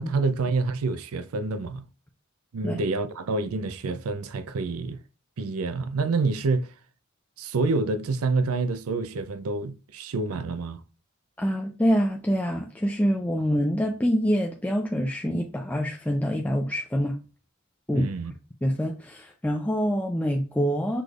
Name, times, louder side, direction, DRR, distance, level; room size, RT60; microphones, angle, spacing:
voice 1, 0.0-1.9 2.5-5.0 5.4-6.7 7.4-10.8 17.9-18.3, right 3 dB, 80° right, 0.5 m, -27 dB
voice 2, 11.4-17.2 17.9-18.1 18.6-21.0, equal, 5° left, 0.4 m, -25 dB
6.0 x 3.2 x 2.4 m
head